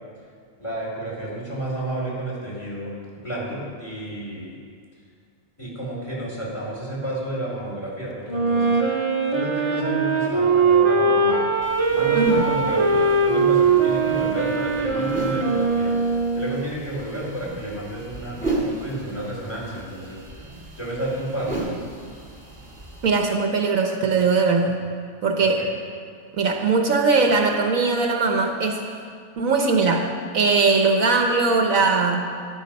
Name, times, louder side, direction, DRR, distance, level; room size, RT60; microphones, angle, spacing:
voice 1, 0.6-4.5 5.6-8.8 9.3-11.5 11.9-15.9 16.3-20.2 20.8-21.6 25.4-25.7, right 1 dB, 20° left, -6 dB, 4.4 m, -31 dB
Wind instrument woodwind instrument, 8.3-16.6, right 4 dB, 20° right, 1.1 m, -21 dB
sound 1, 11.6-23.2, right 2 dB, 5° right, 2.5 m, -35 dB
voice 2, 23.0-24.8 25.2-25.6 26.4-28.9 29.4-32.2, right 4 dB, 65° right, 3 dB, 1.4 m, -20 dB
13.0 x 12.0 x 5.3 m, 2.1 s
omnidirectional pair, 1.5 m